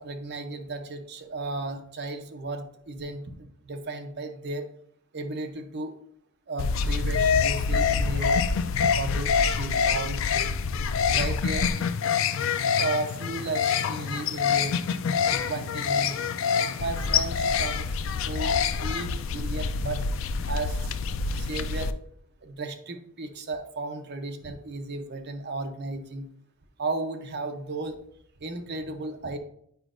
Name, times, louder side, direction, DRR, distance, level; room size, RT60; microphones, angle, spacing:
voice 1, 0.0-4.7 5.1-5.9 6.5-8.4 8.9-10.5 11.1-11.8 12.8-14.8 15.2-16.2 16.7-17.9 18.2-18.5 18.8-20.0 20.4-20.9 21.3-21.9 22.4-26.3 26.8-28.0 28.4-29.4, right 2 dB, 50° right, 6 dB, 0.7 m, -34 dB
sound 1, 6.6-21.9, left 6 dB, 65° left, 0.3 m, -26 dB
7.9 x 5.0 x 2.5 m, 0.68 s
head